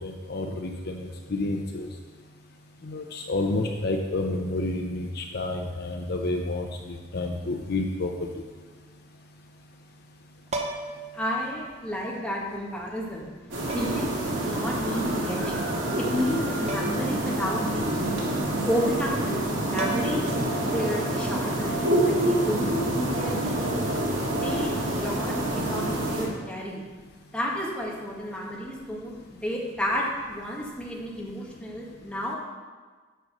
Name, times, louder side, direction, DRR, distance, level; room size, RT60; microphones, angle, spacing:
voice 1, 0.0-1.9 2.8-8.3, left 2 dB, 55° left, 3 dB, 0.7 m, -30 dB
sound 1, 10.5-11.1 12.4-12.5 13.7-14.1 16.7-17.1 17.4-17.5 19.4-19.5 19.8-20.4 22.3-22.5, right 2 dB, 35° right, 0.8 m, -34 dB
voice 2, 11.1-13.3 13.7-15.7 16.0-18.1 18.6-23.8 24.4-26.8 27.3-32.4, equal, 5° left, -4 dB, 1.6 m, -32 dB
sound 2, 13.5-26.3, right 1 dB, 90° right, 2.1 m, -27 dB
6.7 x 6.7 x 6.1 m, 1.4 s
head